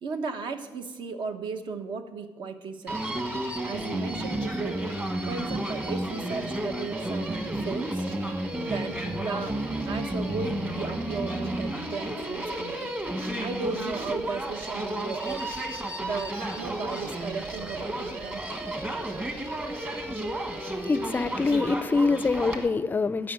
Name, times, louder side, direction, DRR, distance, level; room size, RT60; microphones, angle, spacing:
voice 1, 0.0-3.1 3.6-4.9 5.2-8.1 8.6-9.6 9.9-12.9 13.4-15.5 16.0-18.5, right 4 dB, 65° right, 7 dB, 1.1 m, -35 dB
Human voice, 2.9-22.7, right 1 dB, 20° right, 1.3 m, -32 dB
voice 2, 20.8-23.3, left 4 dB, 20° left, 16 dB, 0.4 m, -25 dB
12.0 x 5.8 x 9.0 m, 1.3 s
cardioid pair, 135°, 9 cm